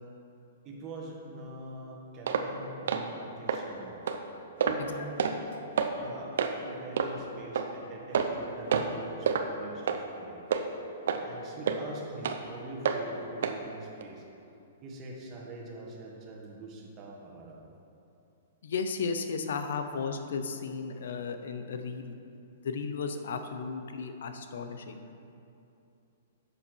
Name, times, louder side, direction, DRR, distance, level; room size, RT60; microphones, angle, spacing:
voice 1, 0.6-4.0 4.7-5.2 6.0-10.4 11.2-14.2 14.8-17.6, right 2 dB, 25° right, -3 dB, 1.8 m, -44 dB
sound 1, 2.3-2.5 2.9-3.1 3.5-3.6 4.1-4.2 4.6-4.8 5.2-5.4 5.8-5.9 6.4-6.5 7.0-7.1 7.5-7.7 8.1-8.4 8.7-8.9 9.3-9.5 9.9-10.0 10.5-10.6 11.1-11.2 11.7-11.8 12.2-12.4 12.9-13.0 13.4-13.6 14.0-14.1, right 7 dB, 70° right, 0.8 m, -27 dB
voice 2, 18.6-22.1 22.6-25.0, left 5 dB, 70° left, 7 dB, 0.8 m, -34 dB
11.0 x 7.0 x 4.6 m, 2.6 s
hypercardioid pair, 155°, 0 cm